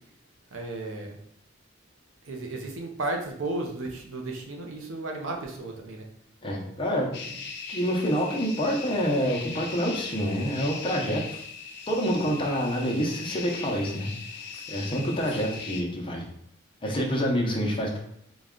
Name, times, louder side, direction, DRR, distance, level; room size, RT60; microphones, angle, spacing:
voice 1, 0.5-1.1 2.3-6.0, right 2 dB, 80° right, 2 dB, 0.7 m, -34 dB
voice 2, 6.4-7.3 7.7-11.4 11.9-14.1 14.7-16.2 16.8-18.0, equal, 25° left, -1 dB, 0.7 m, -27 dB
sound 1, 7.1-15.8, left 5 dB, 60° left, 0.6 m, -39 dB
3.9 x 2.3 x 3.6 m, 0.71 s
head